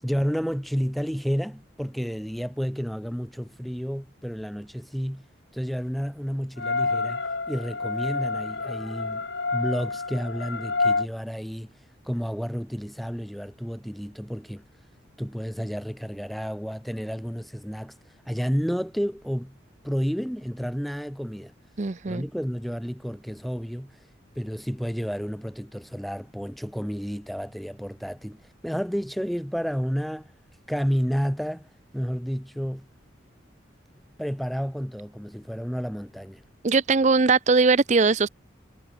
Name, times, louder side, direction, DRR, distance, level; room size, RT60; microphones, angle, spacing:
voice 1, 0.0-5.3 5.5-9.3 9.5-11.7 12.0-14.7 15.2-17.9 18.3-19.6 19.8-21.5 22.1-23.9 24.4-30.3 30.7-31.7 31.9-32.9 34.2-36.4, equal, ahead, 6.1 m, -31 dB
sound 1, 6.6-11.1, left 3 dB, 65° left, 2.0 m, -28 dB
voice 2, 21.8-22.2 36.6-38.3, right 4 dB, 35° right, 0.6 m, -20 dB
head